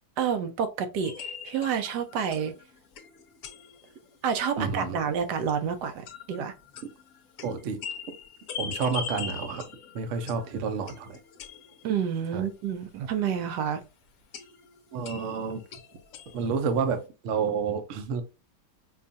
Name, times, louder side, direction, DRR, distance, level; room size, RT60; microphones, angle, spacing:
voice 1, 0.2-2.5 4.2-6.5 11.8-13.8, right 7 dB, 80° right, 1.2 m, -29 dB
sound 1, 1.0-4.3 4.6-4.7 4.8-4.9 5.2-5.3 5.9-12.1 12.5-12.6 14.3-16.8, left 7 dB, 65° left, 0.8 m, -41 dB
voice 2, 4.6-5.0 7.4-7.8 8.6-9.6 9.9-11.2 12.3-12.5 14.9-15.6 16.3-18.2, right 5 dB, 60° right, 0.8 m, -29 dB
4.8 x 2.4 x 2.6 m
omnidirectional pair, 1.9 m